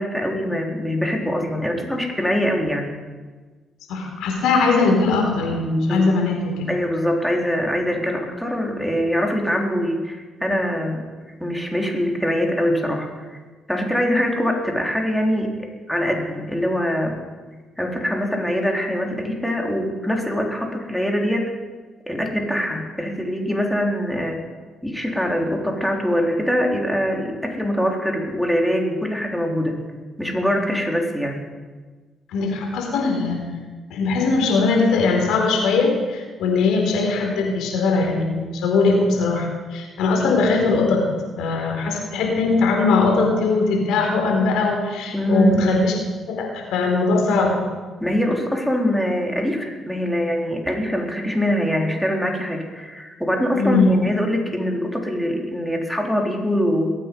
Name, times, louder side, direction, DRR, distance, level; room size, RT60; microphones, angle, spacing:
voice 1, 0.0-2.9 5.9-6.1 6.7-11.0 11.4-13.3 13.7-15.5 15.9-17.2 17.8-21.5 22.1-24.4 24.8-29.8 30.2-31.4 45.1-45.6 48.0-56.9, equal, ahead, 0 dB, 3.8 m, -23 dB
voice 2, 3.9-6.5 32.3-33.4 33.9-41.1 41.4-45.9 46.3-47.6 53.5-53.9, left 3 dB, 75° left, 0 dB, 4.2 m, -20 dB
21.5 x 9.1 x 5.4 m, 1.3 s
hypercardioid pair, 50°, 0 cm